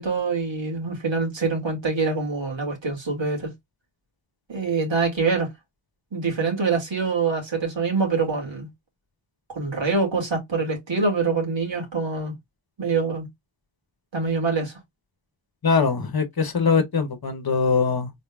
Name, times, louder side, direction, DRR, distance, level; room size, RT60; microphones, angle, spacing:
voice 1, 0.0-3.5 4.5-5.5 6.1-8.7 9.5-12.4 12.8-13.3 14.1-14.7, right 4 dB, 65° right, 2.4 m, -25 dB
voice 2, 15.6-18.1, left 5 dB, 50° left, 1.0 m, -22 dB
4.0 x 3.7 x 2.3 m
wide cardioid pair, 105°, 48 cm